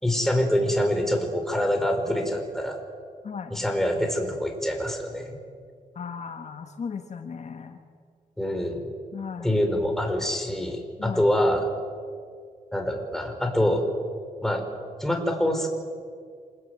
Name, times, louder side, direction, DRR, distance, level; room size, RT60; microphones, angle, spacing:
voice 1, 0.0-2.8 3.5-5.4 8.4-8.9 9.4-11.7 12.7-13.9 14.4-14.6 15.0-15.7, equal, 5° left, 3 dB, 5.0 m, -25 dB
voice 2, 5.9-7.8 9.1-9.5 11.0-11.3, left 6 dB, 50° left, 6 dB, 1.6 m, -36 dB
27.0 x 20.5 x 9.5 m, 2.1 s
cardioid pair, 100°, 15 cm